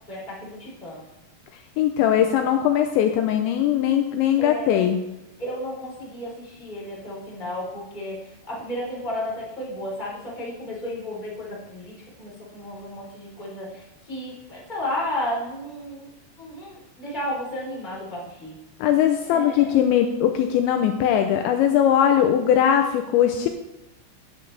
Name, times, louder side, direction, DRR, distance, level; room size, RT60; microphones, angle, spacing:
voice 1, 0.1-1.0 4.4-4.8 5.4-16.1 16.4-18.6 19.3-19.7 22.2-22.3, left 1 dB, 10° left, -5 dB, 3.4 m, -33 dB
voice 2, 1.8-5.0 18.8-23.5, left 10 dB, 80° left, 5 dB, 2.9 m, -20 dB
16.0 x 9.3 x 3.4 m, 0.95 s
omnidirectional pair, 5.4 m